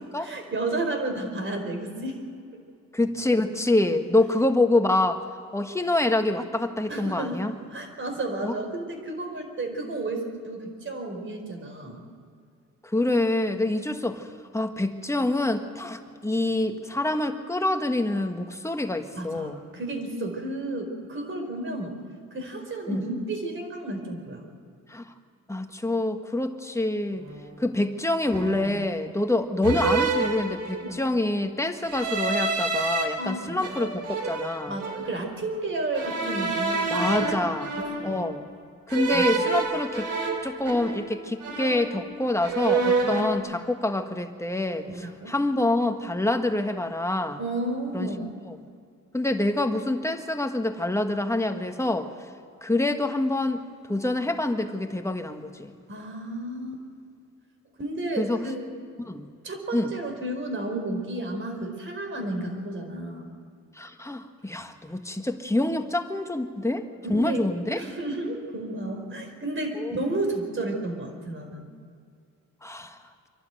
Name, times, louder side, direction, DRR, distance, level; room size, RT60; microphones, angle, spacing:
voice 1, 0.2-2.2 6.9-7.4 7.7-12.0 19.1-21.9 22.3-24.4 30.8-31.0 33.2-33.7 34.7-37.4 38.0-38.2 39.1-39.2 44.9-45.3 47.4-48.3 55.9-56.8 57.8-58.7 59.4-63.3 67.1-67.4 67.7-71.7, right 2 dB, 40° right, 4 dB, 4.9 m, -32 dB
voice 2, 2.9-5.2 5.5-7.5 8.4-8.5 12.9-14.3 14.5-19.6 22.9-23.0 24.9-25.1 25.5-27.2 27.6-34.8 36.9-37.7 38.0-38.4 38.9-40.1 40.4-47.4 47.9-48.1 49.1-52.1 52.6-53.6 53.9-55.7 58.2-58.4 59.1-59.3 59.7-59.9 63.7-67.8 69.7-69.9 72.6-73.0, left 2 dB, 10° left, 6 dB, 1.6 m, -26 dB
sound 1, 27.2-27.5 28.3-28.9 29.6-31.0 31.8-33.0 33.6-35.2 35.9-38.3 38.9-41.2 41.4-42.1 42.4-43.3, right 4 dB, 75° right, 3.5 m, -28 dB
26.0 x 12.0 x 9.2 m, 2.3 s
cardioid pair, 90°, 30 cm